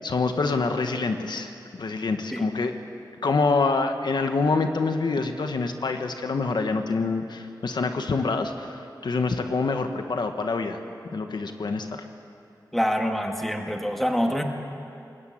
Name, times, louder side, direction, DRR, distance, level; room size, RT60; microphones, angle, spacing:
voice 1, 0.0-2.8 3.2-10.8 11.1-12.0, left 4 dB, 75° left, 6 dB, 1.5 m, -26 dB
voice 2, 12.7-14.4, equal, 5° left, 3 dB, 2.1 m, -25 dB
22.0 x 20.5 x 8.8 m, 2.6 s
wide cardioid pair, 110°, 7 cm